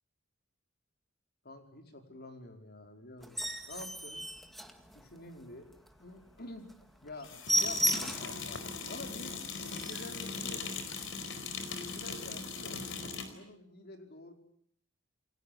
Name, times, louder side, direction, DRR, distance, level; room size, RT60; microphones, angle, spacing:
voice 1, 1.4-4.2 4.9-5.7 6.0-6.7 7.0-8.6 8.9-10.6 11.7-12.8 13.3-14.3, left 1 dB, 50° left, 4 dB, 5.1 m, -48 dB
sound 1, 3.2-5.4 5.8-5.9 6.3-6.4 6.7-6.8 7.1-8.4 8.9-9.0 9.4-9.5 9.7-10.2 10.9-11.1, equal, ahead, 1.9 m, -34 dB
sound 2, 3.8-3.9 7.2-13.3, left 5 dB, 70° left, 4.6 m, -39 dB
29.5 x 22.5 x 8.6 m, 0.68 s
head